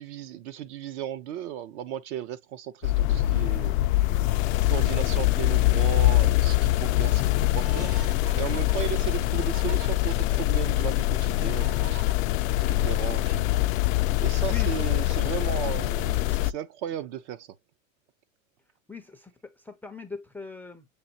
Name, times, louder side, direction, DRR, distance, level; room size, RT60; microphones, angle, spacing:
voice 1, 0.0-3.8 4.5-8.0 8.3-12.1 12.7-13.4 14.2-17.6, right 10 dB, 60° right, 0.8 m, -35 dB
sound 1, 2.8-16.5, left 16 dB, 85° left, 0.5 m, -24 dB
sound 2, 7.0-9.9 10.5-10.6 11.6-12.1, right 10 dB, 30° right, 0.7 m, -46 dB
voice 2, 14.4-15.2 18.9-20.9, left 4 dB, 5° left, 0.4 m, -41 dB
7.0 x 2.6 x 2.8 m
supercardioid pair, 130°, 39 cm